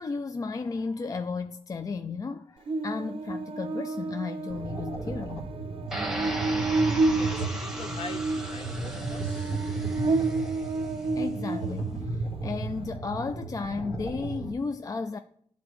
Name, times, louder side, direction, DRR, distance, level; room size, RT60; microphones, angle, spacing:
voice 1, 0.0-5.5 10.8-15.2, left 4 dB, 30° left, 0.3 m, -34 dB
Buzz, 2.7-12.1, right 3 dB, 50° right, 0.5 m, -30 dB
sound 1, 4.5-14.5, right 3 dB, 65° left, 1.7 m, -35 dB
sound 2, 5.9-10.9, right 1 dB, 5° right, 1.2 m, -37 dB
voice 2, 7.1-9.6, left 5 dB, 50° left, 0.8 m, -43 dB
11.0 x 3.9 x 3.1 m
cardioid pair, 65°, 12 cm